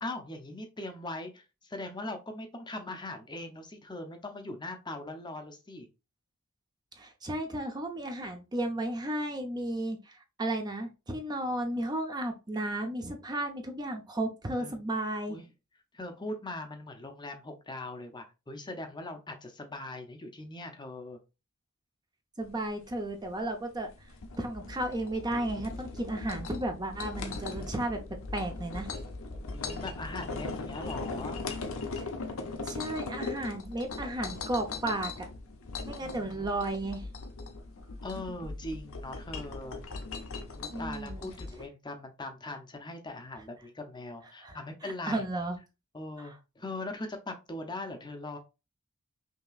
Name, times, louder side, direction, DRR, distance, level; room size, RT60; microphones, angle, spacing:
voice 1, 0.0-5.9 14.6-14.7 15.3-15.4 15.9-21.2 27.2-27.7 29.3-31.4 32.4-33.1 36.0-36.5 38.0-39.8 40.5-45.2 45.9-48.4, left 2 dB, 20° left, 5 dB, 0.7 m, -41 dB
voice 2, 7.0-15.4 22.4-23.9 24.4-28.0 28.3-28.9 32.0-32.1 32.6-35.3 35.8-37.0 40.7-41.3 44.4-44.6 44.8-45.6 46.2-46.3, right 1 dB, 20° right, 4 dB, 0.6 m, -34 dB
Glassware rattle and shake movement, 22.4-41.7, left 3 dB, 65° left, 0.7 m, -39 dB
5.5 x 2.9 x 2.4 m, 0.28 s
head